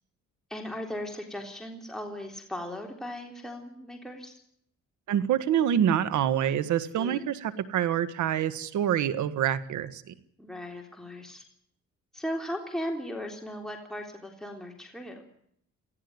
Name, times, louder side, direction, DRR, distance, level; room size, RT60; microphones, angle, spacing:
voice 1, 0.5-4.4 7.0-7.3 10.4-11.4 12.1-15.2, equal, ahead, 1 dB, 3.6 m, -37 dB
voice 2, 5.1-10.1, right 10 dB, 75° right, 14 dB, 1.6 m, -26 dB
19.0 x 15.0 x 9.6 m, 0.69 s
cardioid pair, 90°, 30 cm